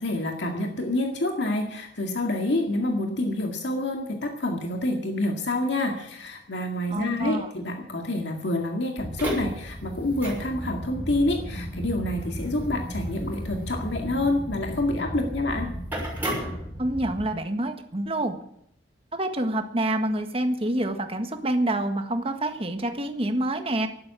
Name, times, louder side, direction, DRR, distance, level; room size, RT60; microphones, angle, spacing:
voice 1, 0.0-15.7, left 1 dB, 70° left, 3 dB, 2.1 m, -27 dB
voice 2, 6.9-7.5 16.8-18.3 19.1-23.9, right 1 dB, 30° right, 6 dB, 1.6 m, -27 dB
sound 1, 9.0-17.2, equal, 10° right, 6.3 m, -33 dB
12.5 x 11.5 x 8.3 m, 0.71 s
head